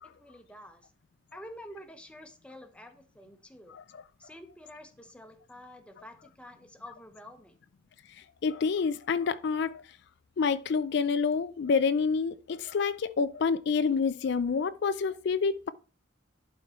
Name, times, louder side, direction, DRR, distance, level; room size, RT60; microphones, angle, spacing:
voice 1, 0.0-0.9 1.3-3.8 4.2-7.6, left 1 dB, 5° left, 1.0 m, -49 dB
voice 2, 3.7-4.0 8.1-9.8 10.4-15.7, left 5 dB, 60° left, 0.4 m, -28 dB
11.0 x 4.4 x 4.2 m
head